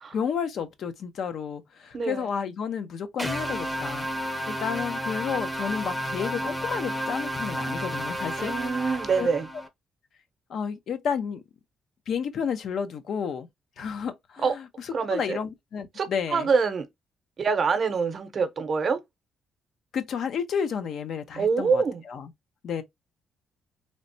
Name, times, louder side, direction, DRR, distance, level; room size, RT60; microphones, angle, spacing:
voice 1, 0.1-4.1 4.5-8.5 8.9-9.3 10.5-11.4 12.1-13.5 13.8-16.5 19.9-22.3 22.6-22.8, left 7 dB, 65° left, 0.5 m, -31 dB
voice 2, 1.9-2.3 8.4-9.5 14.4-14.5 14.9-15.4 16.0-16.9 17.4-19.0 21.4-22.0, right 5 dB, 45° right, 0.7 m, -25 dB
sound 1, 3.2-9.7, equal, ahead, 0.6 m, -31 dB
3.2 x 2.0 x 2.6 m
cardioid pair, 90°, 0 cm